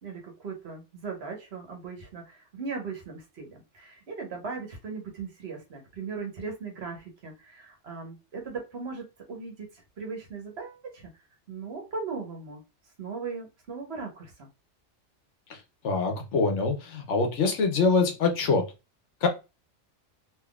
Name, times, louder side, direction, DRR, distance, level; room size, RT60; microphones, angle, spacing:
voice 1, 0.0-9.7 10.0-11.1 11.5-12.6 13.0-14.5, right 4 dB, 60° right, 1 dB, 1.2 m, -38 dB
voice 2, 15.8-18.6 19.2-19.3, left 4 dB, 75° left, 4 dB, 1.1 m, -24 dB
3.5 x 2.9 x 2.3 m, 0.28 s
omnidirectional pair, 1.2 m